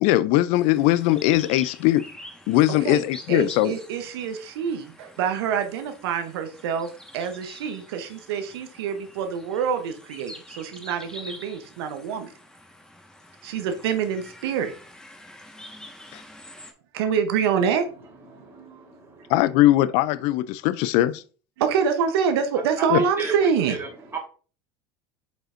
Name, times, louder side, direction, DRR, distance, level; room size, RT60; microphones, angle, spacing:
voice 1, 0.0-2.1 2.5-3.7 16.1-16.2 19.3-21.2 22.9-23.0, left 15 dB, 60° left, 0.4 m, -20 dB
sound 1, 0.5-16.7, left 1 dB, 5° left, 1.4 m, -46 dB
voice 2, 3.3-12.3 13.4-14.7 16.9-18.8 21.6-23.8, right 7 dB, 75° right, 0.9 m, -26 dB
voice 3, 18.2-19.3 22.8-24.2, right 3 dB, 20° right, 3.3 m, -35 dB
7.3 x 5.2 x 2.6 m
hypercardioid pair, 90°, 13 cm